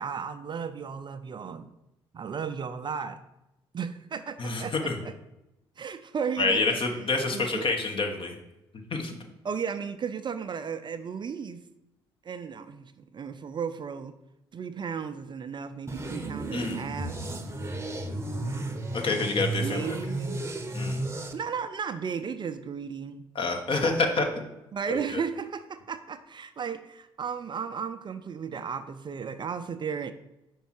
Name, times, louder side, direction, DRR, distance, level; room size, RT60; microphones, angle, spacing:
voice 1, 0.0-1.7 2.1-3.2 3.7-5.1 5.8-7.0 7.3-7.7 9.4-11.6 12.2-14.1 14.5-17.3 19.6-20.4 21.3-23.2 24.7-30.1, right 6 dB, 40° right, 10 dB, 0.4 m, -35 dB
voice 2, 4.4-5.0 6.4-8.3 8.9-9.2 16.5-16.9 18.9-19.9 20.7-21.1 23.3-24.4 24.9-25.0, left 3 dB, 45° left, 3 dB, 1.1 m, -27 dB
sound 1, 15.9-21.3, right 2 dB, 20° right, 0.8 m, -33 dB
5.3 x 4.6 x 4.6 m, 0.92 s
hypercardioid pair, 50°, 12 cm